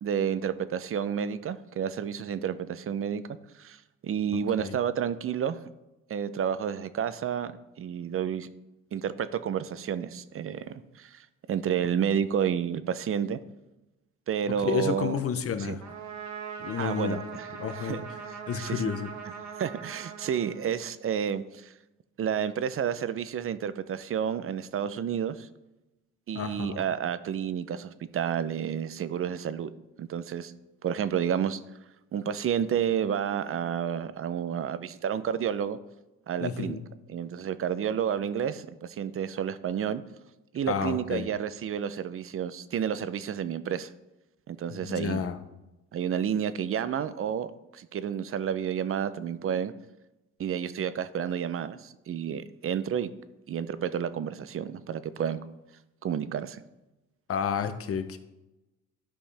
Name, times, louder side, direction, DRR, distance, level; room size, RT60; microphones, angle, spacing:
voice 1, 0.0-3.2 3.6-5.6 6.1-7.5 7.8-8.5 8.9-13.4 14.3-15.2 15.6-15.8 16.8-18.8 19.6-21.7 22.2-25.5 26.3-29.7 30.0-30.5 30.8-31.6 32.1-35.8 36.3-36.8 37.1-40.0 40.5-43.9 44.5-45.3 45.9-49.7 50.4-53.1 53.5-55.4 56.0-56.6, right 8 dB, 45° right, 14 dB, 0.6 m, -30 dB
voice 2, 14.6-15.8 16.6-17.2 17.6-18.0 18.5-19.1 26.3-26.8 36.4-36.8 40.7-41.3 44.7-45.4 57.3-58.2, left 7 dB, 50° left, 10 dB, 0.8 m, -31 dB
Trumpet, 15.8-21.1, right 6 dB, 65° right, 1.4 m, -41 dB
11.5 x 5.3 x 3.3 m, 0.98 s
cardioid pair, 90°, 30 cm